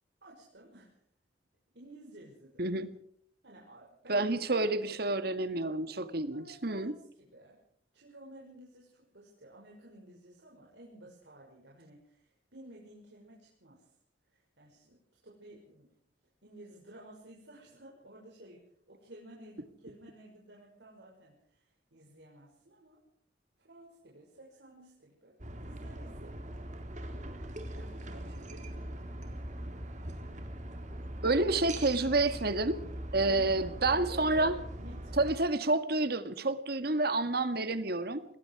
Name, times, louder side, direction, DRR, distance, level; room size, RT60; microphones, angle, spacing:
voice 1, 0.2-1.0 1.7-2.6 3.4-4.4 4.8-5.2 6.3-7.6 7.9-13.9 14.3-15.9 16.4-18.6 18.9-23.0 23.6-26.8 27.2-29.3 33.3-35.3, right 1 dB, 75° right, -3 dB, 6.1 m, -54 dB
voice 2, 2.6-2.9 4.1-6.9 31.2-32.8 33.1-34.5 35.2-38.2, right 2 dB, 60° right, 11 dB, 1.9 m, -29 dB
sound 1, 25.4-35.4, right 1 dB, 45° right, 3.8 m, -41 dB
27.0 x 20.5 x 4.9 m, 0.63 s
head